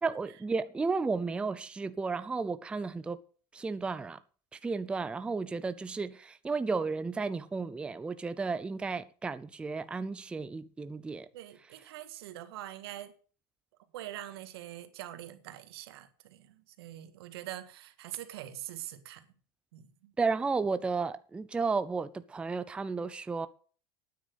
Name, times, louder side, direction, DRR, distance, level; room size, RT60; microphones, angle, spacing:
voice 1, 0.0-3.2 3.5-4.2 4.6-11.3 20.2-23.5, right 4 dB, 10° right, 0.5 m, -33 dB
voice 2, 11.3-13.1 13.9-19.3 19.7-20.1, right 13 dB, 85° right, 1.8 m, -44 dB
9.5 x 7.7 x 8.1 m
supercardioid pair, 150°, 13 cm